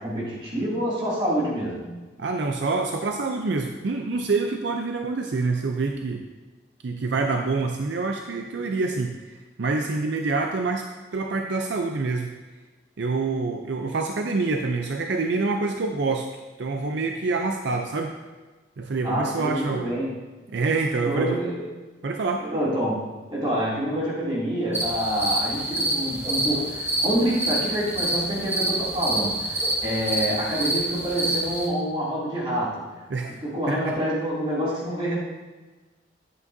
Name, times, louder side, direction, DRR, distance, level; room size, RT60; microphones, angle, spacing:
voice 1, 0.0-1.9 19.0-20.1 21.0-21.7 22.4-23.0 23.3-32.8 33.4-35.2, equal, 25° right, -7 dB, 2.5 m, -27 dB
voice 2, 2.2-6.2 6.8-10.9 11.1-12.3 13.0-16.3 16.6-18.1 18.8-19.9 20.5-21.4 22.0-22.5 33.1-33.3 33.7-33.9, right 3 dB, 65° right, 4 dB, 0.5 m, -26 dB
sound 1, 24.7-31.7, right 1 dB, 10° right, 0.9 m, -27 dB
11.0 x 8.2 x 2.7 m, 1.3 s
head